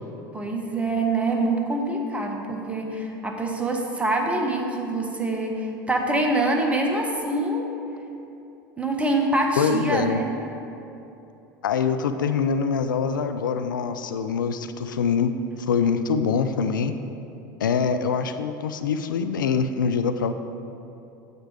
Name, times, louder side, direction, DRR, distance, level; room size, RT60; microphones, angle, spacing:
voice 1, 0.3-7.6 8.8-10.3, right 2 dB, 10° right, 1 dB, 1.5 m, -25 dB
voice 2, 9.6-10.2 11.6-15.3 15.7-16.9 17.6-20.3, left 6 dB, 75° left, 9 dB, 0.5 m, -24 dB
9.4 x 7.9 x 4.9 m, 2.9 s
figure-of-eight pair, 75°, 11 cm